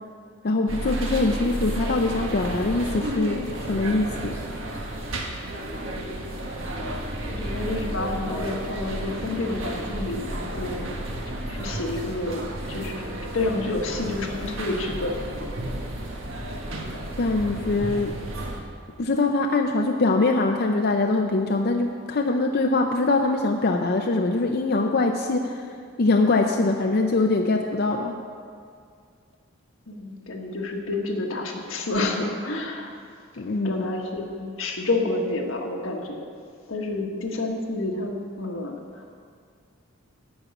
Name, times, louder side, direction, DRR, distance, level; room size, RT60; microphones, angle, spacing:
voice 1, 0.4-4.4 17.2-18.2 19.0-25.7 26.0-28.2 33.4-33.9, left 2 dB, 55° left, 3 dB, 0.6 m, -23 dB
sound 1, 0.7-18.6, right 1 dB, 75° right, 1.4 m, -32 dB
voice 2, 7.3-10.9 11.5-12.4 12.7-15.2 29.9-32.9 33.6-36.2 36.7-39.2, left 2 dB, 90° left, 1 dB, 1.5 m, -29 dB
12.0 x 5.3 x 8.2 m, 2.2 s
head